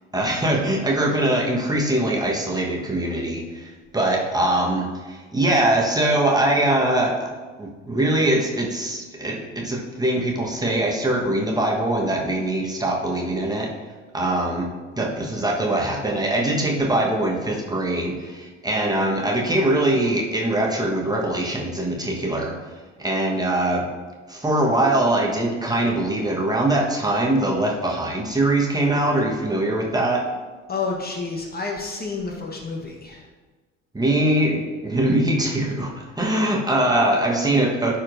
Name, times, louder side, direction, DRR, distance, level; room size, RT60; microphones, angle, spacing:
voice 1, 0.1-7.3 7.6-13.7 14.1-14.7 15.0-22.6 23.0-23.9 24.3-30.2 33.9-38.0, right 1 dB, 10° right, -2 dB, 1.3 m, -22 dB
voice 2, 30.7-33.3, left 4 dB, 25° left, 0 dB, 1.1 m, -29 dB
12.0 x 4.3 x 2.6 m, 1.3 s
figure-of-eight pair, 55°, 37 cm